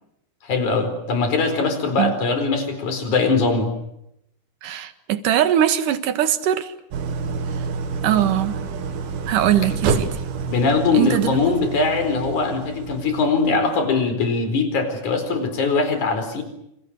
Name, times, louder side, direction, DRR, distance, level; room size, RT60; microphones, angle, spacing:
voice 1, 0.4-3.7 9.9-10.0 10.5-16.4, left 4 dB, 55° left, 5.8 m, -21 dB
voice 2, 4.6-6.7 8.0-8.6 9.3-10.1 10.9-11.4, right 11 dB, 65° right, 3.0 m, -21 dB
Idling, 6.9-14.0, right 5 dB, 80° right, 3.9 m, -28 dB
28.5 x 28.0 x 6.5 m
omnidirectional pair, 4.2 m